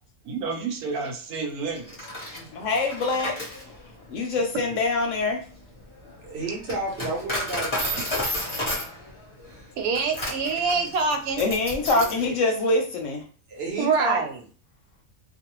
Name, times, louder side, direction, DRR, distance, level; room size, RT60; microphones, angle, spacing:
voice 1, 0.3-1.9 9.8-11.4 13.8-14.4, right 4 dB, 90° right, 4 dB, 1.1 m, -26 dB
Coin (dropping), 1.8-12.3, left 1 dB, 30° left, 0.5 m, -33 dB
voice 2, 2.4-3.3 4.1-5.4 11.4-13.2, left 3 dB, 70° left, 3 dB, 0.8 m, -24 dB
voice 3, 6.0-8.0 11.9-12.3 13.5-14.2, right 2 dB, 50° right, -1 dB, 0.9 m, -31 dB
2.5 x 2.1 x 2.9 m, 0.41 s
omnidirectional pair, 1.5 m